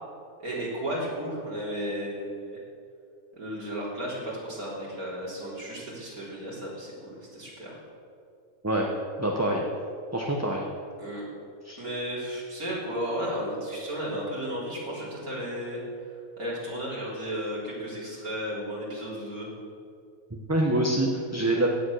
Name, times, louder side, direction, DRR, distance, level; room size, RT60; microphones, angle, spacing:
voice 1, 0.4-2.6 3.3-7.8 11.0-11.2 11.8-15.8 16.4-19.5, equal, 75° right, -6 dB, 4.3 m, -34 dB
voice 2, 9.2-9.6 10.1-10.7 11.6-11.8 20.5-21.7, right 1 dB, 10° right, -1 dB, 1.1 m, -25 dB
17.0 x 9.6 x 6.5 m, 2.4 s
omnidirectional pair, 1.5 m